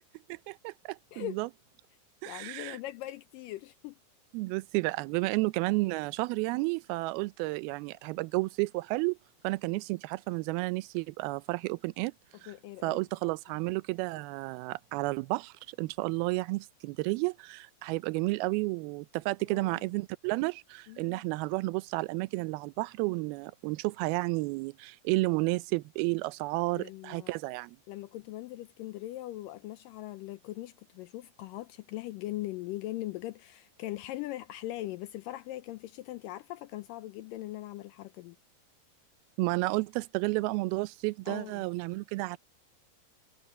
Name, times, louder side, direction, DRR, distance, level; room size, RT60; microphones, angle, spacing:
voice 1, 0.3-1.5 2.2-2.8 4.3-9.2 9.4-12.1 12.4-12.5 12.8-27.8 39.4-42.4, right 23 dB, 80° right, 2.4 m, -32 dB
voice 2, 2.3-4.0 12.5-13.0 13.5-13.6 19.5-19.8 20.9-21.2 26.8-27.4 27.9-38.4 41.3-41.6, left 16 dB, 85° left, 2.0 m, -40 dB
omnidirectional pair, 4.6 m